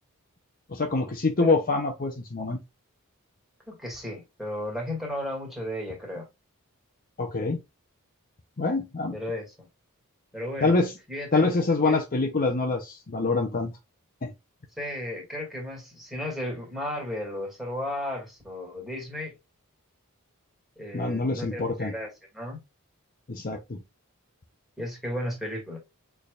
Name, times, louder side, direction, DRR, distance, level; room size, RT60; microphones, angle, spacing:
voice 1, 0.7-2.6 7.2-7.6 8.6-9.2 10.6-10.9 11.3-13.7 14.2-14.3 20.9-21.9 23.3-23.8, left 3 dB, 40° left, 0.7 m, -25 dB
voice 2, 3.7-6.3 9.1-9.7 10.3-10.7 11.1-11.5 11.8-12.0 14.8-19.4 20.8-22.6 24.8-25.8, left 1 dB, ahead, 2.2 m, -34 dB
6.4 x 3.4 x 2.4 m
head